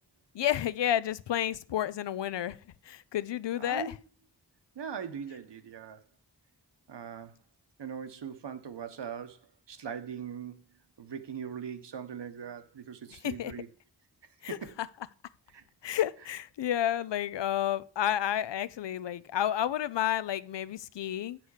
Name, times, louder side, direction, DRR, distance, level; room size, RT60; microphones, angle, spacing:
voice 1, 0.3-2.6 2.8-3.9 13.2-13.5 14.4-14.9 15.8-21.4, left 11 dB, 85° left, 0.6 m, -31 dB
voice 2, 3.6-3.9 4.7-6.0 6.9-7.4 7.8-10.7 11.0-13.7 14.2-14.7 15.5-15.6, right 7 dB, 80° right, 1.0 m, -41 dB
8.1 x 6.1 x 4.8 m
wide cardioid pair, 75°, 42 cm